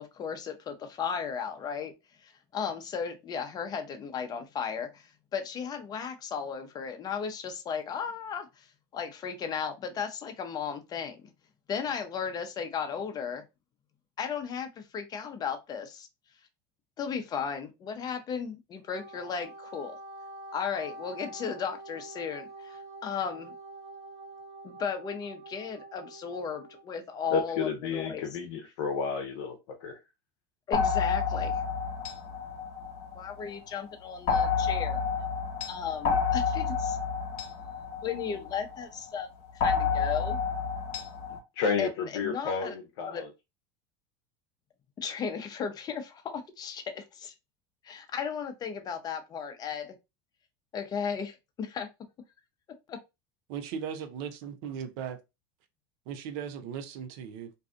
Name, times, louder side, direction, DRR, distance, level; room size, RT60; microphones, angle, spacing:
voice 1, 0.0-1.9 2.2-8.6 8.9-11.3 11.7-13.4 14.2-16.1 17.0-20.0 20.5-23.5 24.6-28.3 30.7-31.6 33.2-35.0 35.7-37.0 38.0-39.3 39.6-40.4 41.8-43.2 45.0-47.3 47.8-50.0 50.7-51.9 52.9-53.0, left 6 dB, 30° left, 0.6 m, -35 dB
Wind instrument woodwind instrument, 18.8-26.8, right 2 dB, 25° right, 1.1 m, -46 dB
voice 2, 27.3-30.0 41.6-43.3, left 5 dB, 75° left, 0.6 m, -31 dB
sound 1, 30.7-33.5 34.3-38.8 39.6-41.4, left 6 dB, 55° left, 1.0 m, -29 dB
voice 3, 53.5-55.2 56.1-57.5, right 7 dB, 65° right, 0.6 m, -37 dB
2.6 x 2.4 x 2.4 m
supercardioid pair, 105°, 13 cm